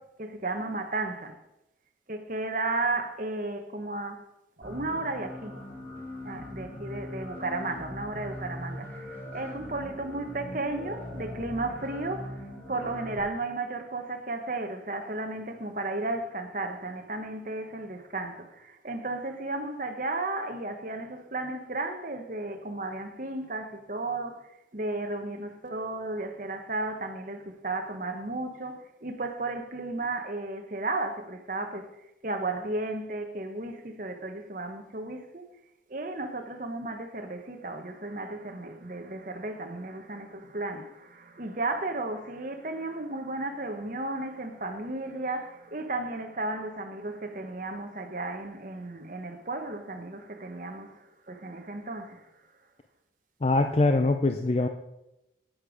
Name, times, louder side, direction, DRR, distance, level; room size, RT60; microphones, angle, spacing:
voice 1, 0.0-1.4 2.1-4.2 4.6-5.6 6.2-31.9 32.2-35.4 35.9-52.3, right 2 dB, 45° right, 1.1 m, -34 dB
sound 1, 4.6-13.2, left 1 dB, 15° left, 5.0 m, -41 dB
voice 2, 53.4-54.7, left 2 dB, 35° left, 0.5 m, -23 dB
10.0 x 8.9 x 5.0 m
head